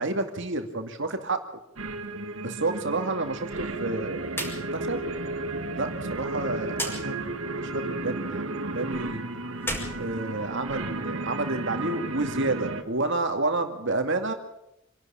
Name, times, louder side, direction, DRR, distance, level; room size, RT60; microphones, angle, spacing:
voice 1, 0.0-1.4 2.4-5.1 5.8-7.3 7.7-9.2 10.0-14.3, right 2 dB, 65° right, 6 dB, 2.3 m, -30 dB
sound 1, 1.8-12.8, right 2 dB, 90° right, 2.1 m, -33 dB
sound 2, 4.3-4.6 4.9-5.0 6.7-7.0 9.5-10.8, equal, 10° left, 5.8 m, -33 dB
27.0 x 12.0 x 8.8 m, 0.82 s
head